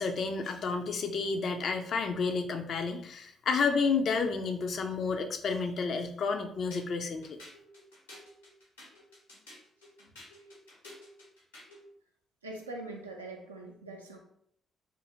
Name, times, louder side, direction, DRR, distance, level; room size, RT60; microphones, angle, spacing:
voice 1, 0.0-7.4, left 4 dB, 50° left, 6 dB, 0.4 m, -30 dB
sound 1, 6.7-11.9, left 1 dB, 80° left, 0.9 m, -52 dB
voice 2, 12.4-14.2, right 2 dB, 85° right, 1 dB, 0.4 m, -42 dB
2.6 x 2.5 x 2.9 m, 0.68 s
figure-of-eight pair, 45°, 0 cm